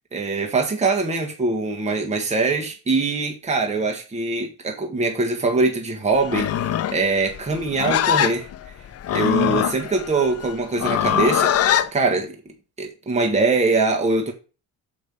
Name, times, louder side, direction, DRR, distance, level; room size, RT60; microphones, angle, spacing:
voice 1, 0.1-8.5 9.1-14.3, right 3 dB, 20° right, 1.4 m, -23 dB
Livestock farm animals working animals, 6.2-11.9, left 10 dB, 45° left, 0.6 m, -22 dB
6.5 x 5.2 x 5.4 m
cardioid pair, 135°, 34 cm